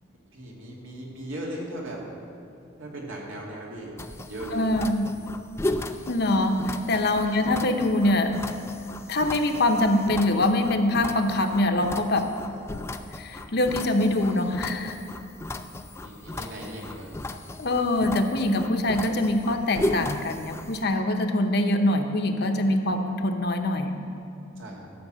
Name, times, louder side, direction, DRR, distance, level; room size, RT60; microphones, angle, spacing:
voice 1, 0.3-2.0 2.8-4.0 4.3-4.6 7.3-7.5 16.0-17.1 24.6-24.9, right 1 dB, 85° right, -3 dB, 2.3 m, -38 dB
sound 1, 4.0-20.8, left 1 dB, 15° left, 0.3 m, -36 dB
voice 2, 4.5-5.1 6.1-8.4 9.1-12.3 13.2-15.0 17.6-23.9, left 1 dB, 55° left, 5 dB, 0.8 m, -24 dB
13.0 x 5.9 x 7.4 m, 2.6 s
head